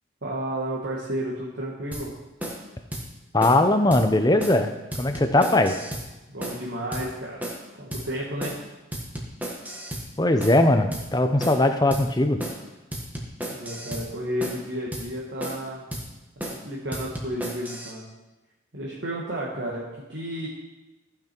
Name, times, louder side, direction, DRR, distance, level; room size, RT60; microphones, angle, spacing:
voice 1, 0.2-2.1 6.3-8.6 13.5-15.8 16.5-18.1 18.7-20.5, right 1 dB, 60° right, -4 dB, 1.5 m, -32 dB
sound 1, 1.9-2.1 2.4-2.6 2.9-3.1 3.4-3.6 3.9-4.1 4.4-4.6 4.9-6.1 6.4-6.6 6.9-7.1 7.4-7.6 7.9-8.1 8.4-8.6 8.9-10.1 10.4-10.6 10.9-11.1 11.4-11.6 11.9-12.1 12.4-12.6 12.9-14.1 14.4-14.6 14.9-15.1 15.4-15.7 15.9-16.1 16.4-16.6 16.9-17.9, right 1 dB, 10° right, 1.3 m, -34 dB
voice 2, 3.3-4.7 5.0-5.8 10.2-12.4, left 1 dB, 20° left, 7 dB, 0.7 m, -20 dB
15.0 x 6.0 x 4.5 m, 1.0 s
head